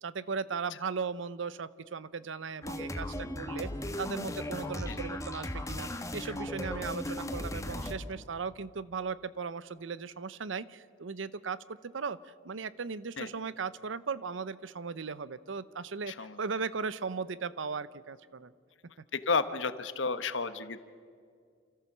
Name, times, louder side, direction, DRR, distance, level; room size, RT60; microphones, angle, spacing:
voice 1, 0.0-3.7 4.0-18.5, right 5 dB, 90° right, 17 dB, 0.7 m, -37 dB
sound 1, 2.6-7.9, left 1 dB, 15° left, 1.2 m, -37 dB
voice 2, 19.1-20.8, left 4 dB, 75° left, 12 dB, 1.1 m, -32 dB
28.5 x 14.0 x 7.3 m, 2.1 s
head